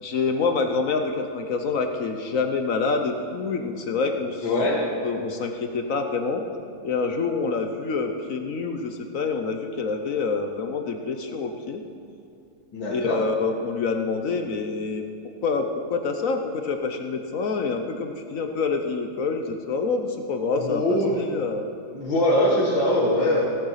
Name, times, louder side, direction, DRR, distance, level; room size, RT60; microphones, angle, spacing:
voice 1, 0.0-4.5 5.0-6.4 6.8-11.8 12.9-15.0 15.4-21.7, left 4 dB, 55° left, 5 dB, 1.0 m, -27 dB
voice 2, 4.4-4.8 12.7-13.2 20.6-21.1 21.9-23.4, left 1 dB, 85° left, -6 dB, 2.3 m, -22 dB
17.0 x 7.8 x 5.7 m, 2.5 s
omnidirectional pair, 2.0 m